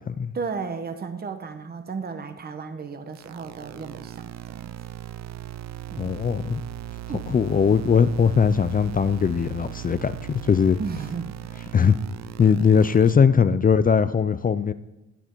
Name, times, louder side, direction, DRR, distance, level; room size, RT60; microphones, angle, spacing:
voice 1, 0.3-4.7 5.9-6.1 7.1-7.3 10.8-11.7, right 5 dB, 30° right, 8 dB, 1.0 m, -34 dB
sound 1, 3.1-13.1, right 13 dB, 60° right, 0.6 m, -38 dB
voice 2, 6.0-6.6 7.3-10.8 11.7-12.0 12.4-14.7, left 6 dB, 30° left, 13 dB, 0.5 m, -20 dB
16.0 x 8.1 x 4.6 m, 1.0 s
cardioid pair, 90°, 30 cm